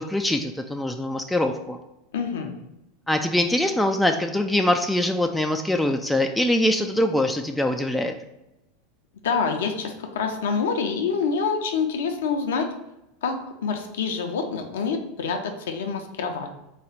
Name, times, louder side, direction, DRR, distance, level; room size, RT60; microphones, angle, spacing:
voice 1, 0.0-1.8 3.1-8.1, left 1 dB, 5° left, 4 dB, 0.3 m, -23 dB
voice 2, 2.1-2.5 9.2-12.7 13.2-13.4 13.6-16.6, left 5 dB, 65° left, 5 dB, 0.5 m, -26 dB
4.0 x 2.3 x 4.7 m, 0.90 s
figure-of-eight pair, 80°, 0 cm